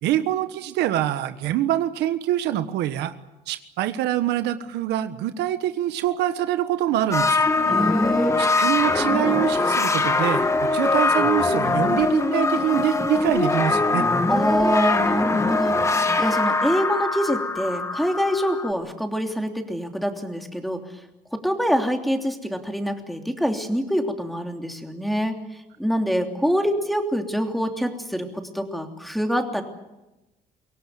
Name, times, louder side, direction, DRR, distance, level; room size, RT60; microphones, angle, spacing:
voice 1, 0.0-3.1 3.5-7.4 8.4-14.0, right 12 dB, 85° right, 10 dB, 1.4 m, -25 dB
sound 1, 7.1-18.7, left 3 dB, 15° left, 1.9 m, -22 dB
voice 2, 7.7-8.3 14.3-20.8 21.3-25.4 25.8-29.6, equal, ahead, 4 dB, 3.0 m, -25 dB
24.0 x 17.5 x 9.3 m, 1.0 s
cardioid pair, 110°, 17 cm